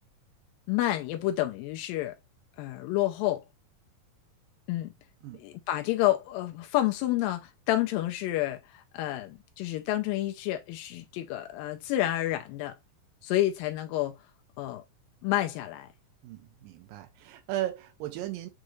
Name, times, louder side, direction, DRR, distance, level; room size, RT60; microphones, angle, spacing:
voice 1, 0.7-2.1 2.6-3.4 4.7-4.9 5.4-12.8 13.2-14.2 14.6-14.8 15.2-15.9, left 14 dB, 90° left, 2.4 m, -29 dB
voice 2, 16.2-18.5, right 14 dB, 85° right, 2.3 m, -36 dB
6.5 x 2.4 x 3.0 m
omnidirectional pair, 4.0 m